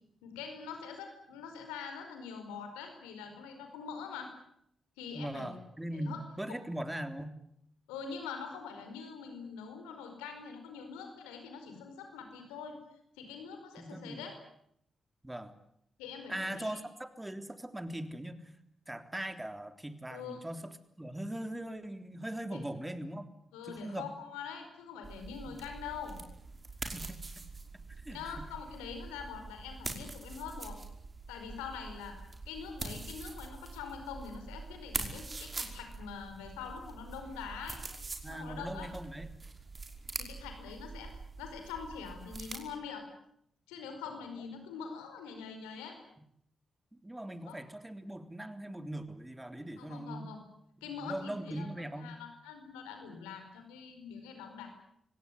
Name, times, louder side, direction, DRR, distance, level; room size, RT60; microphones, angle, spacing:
voice 1, 0.2-4.3 5.0-5.5 5.9-6.2 6.5-6.6 7.9-12.8 13.2-14.3 16.0-16.8 20.1-20.4 22.5-22.6 23.5-26.2 28.1-30.8 31.3-32.1 32.4-37.8 38.3-38.9 40.2-41.1 41.4-43.0 43.7-46.0 47.5-47.6 49.8-50.4 50.8-51.7 52.0-54.7, left 6 dB, 90° left, 6 dB, 4.9 m, -44 dB
voice 2, 5.1-7.4 13.8-14.2 15.2-15.5 16.3-18.4 18.9-20.7 21.0-23.3 23.6-24.1 25.5-25.6 26.8-27.5 28.0-28.5 38.2-39.3 47.0-50.4 51.0-52.2, right 1 dB, 15° right, 9 dB, 3.5 m, -40 dB
sound 1, 25.0-42.6, right 3 dB, 40° right, 5.3 m, -44 dB
25.5 x 18.0 x 10.0 m, 0.73 s
hypercardioid pair, 45°, 0 cm